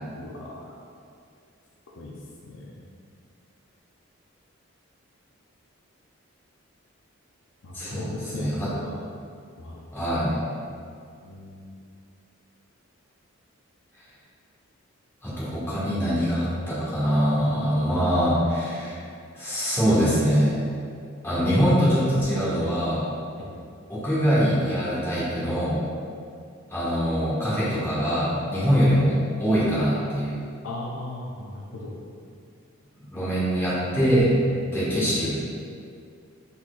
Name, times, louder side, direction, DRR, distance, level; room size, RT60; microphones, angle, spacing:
voice 1, 0.1-0.8 2.0-2.1 2.4-2.9 7.6-9.0 9.6-9.9 11.2-11.7 23.4-23.5 30.6-31.9, left 2 dB, 65° left, -3 dB, 0.5 m, -37 dB
voice 2, 7.7-8.7 9.9-10.4 15.2-19.0 19.3-20.6 21.2-23.0 23.9-25.8 26.7-30.4 33.0-34.3 34.7-35.3, equal, 10° left, -10 dB, 1.1 m, -23 dB
4.2 x 4.2 x 2.4 m, 2.3 s
head